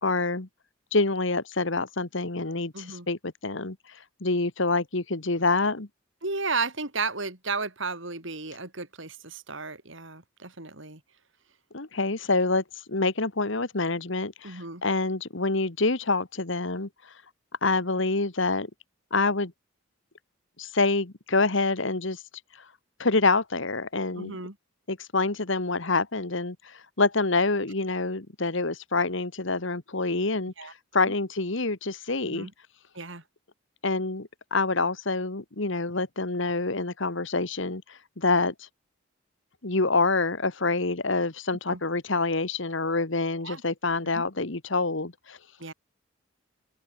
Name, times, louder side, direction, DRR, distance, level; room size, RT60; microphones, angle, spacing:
voice 1, 0.0-0.5 0.9-5.9 11.7-16.9 17.6-18.7 19.1-19.5 20.6-22.2 23.0-24.4 24.9-32.5 33.8-38.7 39.6-45.4, left 3 dB, 65° left, 1.6 m, -27 dB
voice 2, 2.7-3.1 6.2-11.0 14.4-14.8 24.2-24.5 30.6-30.7 31.1-31.2 32.2-32.5 33.0-33.2 41.7-41.8 43.4-43.6 44.1-44.2 45.6-45.7, right 4 dB, 65° right, 3.8 m, -33 dB
open air
head